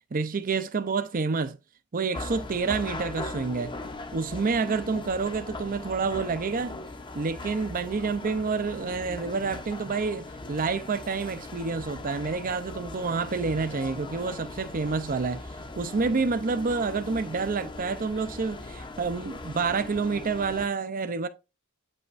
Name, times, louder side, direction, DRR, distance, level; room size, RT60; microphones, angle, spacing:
voice 1, 0.1-1.6 1.9-3.8 4.1-6.7 7.1-15.4 15.8-21.3, right 4 dB, 40° right, 0.5 m, -28 dB
sound 1, 2.1-20.7, left 2 dB, 20° left, 0.7 m, -40 dB
8.9 x 5.5 x 2.5 m
head